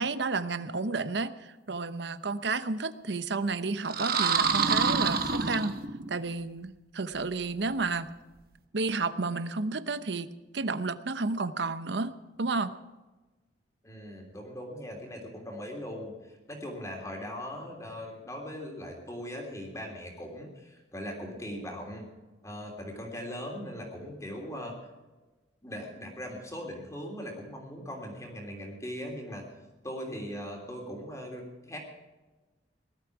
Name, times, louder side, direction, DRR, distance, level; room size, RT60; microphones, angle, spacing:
voice 1, 0.0-5.8 6.1-8.1 8.7-10.3 10.5-12.1 12.4-12.7, right 3 dB, 70° right, 13 dB, 0.8 m, -31 dB
sound 1, 3.8-6.2, right 5 dB, 50° right, 1.2 m, -27 dB
voice 2, 13.8-22.1 22.4-24.8 25.6-29.5 29.8-31.8, equal, 15° left, 1 dB, 3.1 m, -40 dB
19.5 x 12.5 x 4.7 m, 1.2 s
head